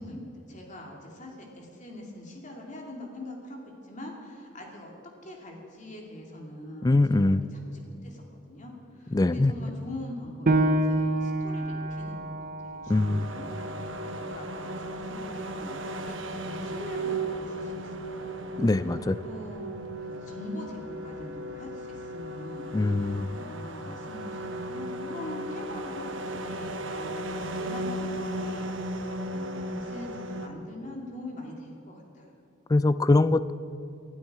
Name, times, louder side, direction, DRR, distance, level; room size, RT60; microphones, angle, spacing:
voice 1, 0.0-4.9 5.2-8.2 8.5-18.6 19.2-32.3, left 1 dB, 40° left, 0 dB, 2.6 m, -43 dB
voice 2, 6.8-7.4 9.1-9.5 12.9-13.3 18.6-19.2 22.7-23.3 32.7-33.5, left 2 dB, 20° left, 15 dB, 0.3 m, -22 dB
Piano, 10.5-15.6 16.1-16.2 16.8-17.3, right 1 dB, 45° right, 0.8 m, -29 dB
sound 1, 12.9-30.5, right 1 dB, 80° right, 1.1 m, -36 dB
19.0 x 12.5 x 4.8 m, 2.7 s
head